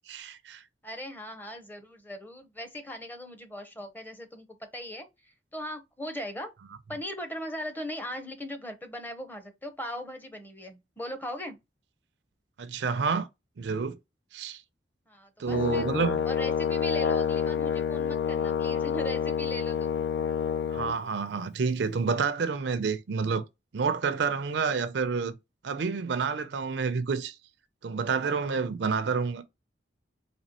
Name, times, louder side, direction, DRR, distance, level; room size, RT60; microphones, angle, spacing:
voice 1, 0.1-0.6 12.6-13.3 13.6-14.0 14.3-14.6 15.4-16.2 20.7-23.4 23.7-25.4 25.6-27.4 27.8-29.4, right 5 dB, 70° right, 0.5 m, -29 dB
voice 2, 0.8-6.5 6.9-11.6 15.1-15.9 16.2-20.0, equal, 10° left, 0.7 m, -39 dB
Brass instrument, 15.5-21.0, left 7 dB, 75° left, 0.4 m, -28 dB
4.2 x 2.8 x 2.8 m
head